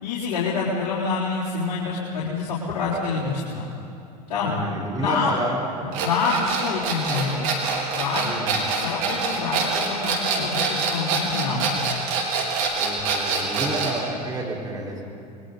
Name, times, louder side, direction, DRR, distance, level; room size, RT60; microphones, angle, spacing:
voice 1, 0.0-3.7 4.3-4.5 5.0-5.3 5.8-7.5 7.9-11.8, left 4 dB, 65° left, -8 dB, 4.0 m, -27 dB
voice 2, 4.4-5.9 8.2-8.6 12.8-15.0, right 1 dB, 20° right, -3 dB, 5.2 m, -30 dB
sound 1, 5.9-14.0, right 4 dB, 60° right, 4.3 m, -25 dB
29.0 x 22.5 x 4.3 m, 2.7 s
hypercardioid pair, 80°, 21 cm